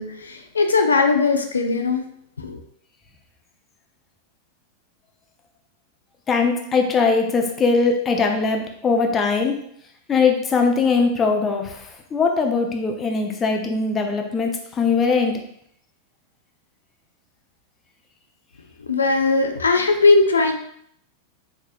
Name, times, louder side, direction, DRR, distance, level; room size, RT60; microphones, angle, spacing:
voice 1, 0.0-2.0 2.4-2.6 18.8-20.5, left 3 dB, 75° left, 6 dB, 0.5 m, -19 dB
voice 2, 6.3-9.5 10.1-11.9 12.1-15.4, left 4 dB, 20° left, 3 dB, 0.6 m, -20 dB
4.6 x 3.4 x 2.4 m, 0.68 s
figure-of-eight pair, 90°, 0 cm